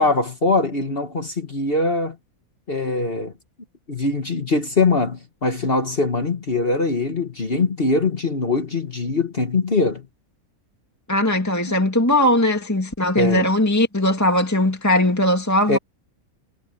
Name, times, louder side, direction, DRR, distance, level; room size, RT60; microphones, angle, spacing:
voice 1, 0.0-2.2 2.7-3.3 3.9-10.1 13.2-13.5 15.7-15.8, left 3 dB, 40° left, 1.7 m, -22 dB
voice 2, 11.1-15.8, left 1 dB, 10° left, 2.1 m, -19 dB
omnidirectional pair, 1.5 m